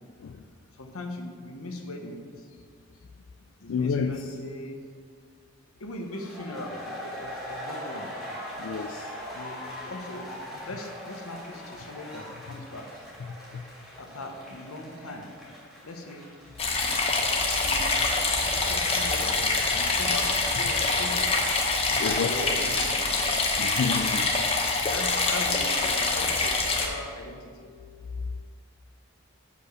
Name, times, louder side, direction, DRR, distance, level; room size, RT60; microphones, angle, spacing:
voice 1, 0.7-2.5 3.6-4.8 5.8-8.1 9.3-10.3 10.6-12.9 14.0-15.3 15.8-16.3 16.8-17.0 17.4-17.9 18.7-21.3 22.0-23.0 24.9-27.7, left 1 dB, 90° left, 3 dB, 1.0 m, -39 dB
voice 2, 3.7-4.3 8.6-9.1 13.5-13.6 21.9-22.4 23.6-24.4, left 5 dB, 70° left, 5 dB, 0.4 m, -29 dB
sound 1, 6.1-17.7, equal, 5° right, 1.6 m, -41 dB
sound 2, 16.6-26.9, left 3 dB, 25° left, 0.8 m, -25 dB
6.6 x 5.2 x 6.4 m, 2.1 s
head